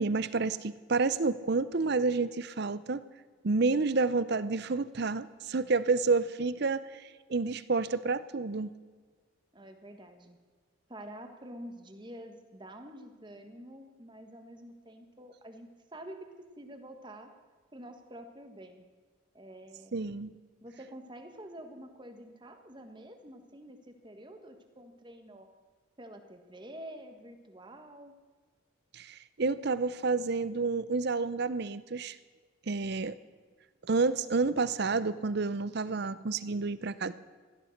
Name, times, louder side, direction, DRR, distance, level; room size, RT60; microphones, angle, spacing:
voice 1, 0.0-3.0 3.4-8.7 19.9-20.3 28.9-32.2 32.7-33.2 33.9-37.1, right 4 dB, 50° right, 15 dB, 0.6 m, -29 dB
voice 2, 9.5-10.4 10.9-16.3 16.6-17.3 17.7-18.8 19.3-20.0 20.6-25.5 26.0-28.1, right 1 dB, 20° right, 6 dB, 1.4 m, -48 dB
16.0 x 13.0 x 6.5 m, 1.5 s
head